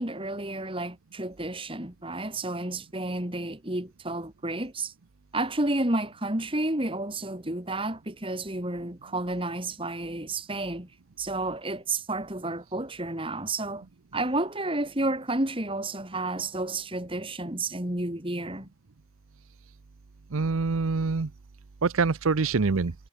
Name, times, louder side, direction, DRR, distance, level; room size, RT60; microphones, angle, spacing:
voice 1, 0.0-4.9 5.3-10.9 11.2-13.8 14.1-18.7, right 2 dB, 25° right, 2.8 m, -31 dB
voice 2, 20.3-21.3 21.8-22.9, right 4 dB, 85° right, 0.7 m, -25 dB
head